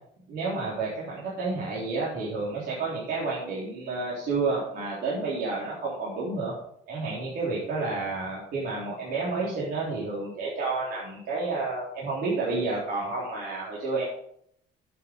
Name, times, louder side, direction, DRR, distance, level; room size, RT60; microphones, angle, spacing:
voice 1, 0.3-6.5 6.9-14.0, right 3 dB, 65° right, -6 dB, 4.0 m, -30 dB
9.3 x 8.4 x 5.4 m, 0.69 s
cardioid pair, 110°, 17 cm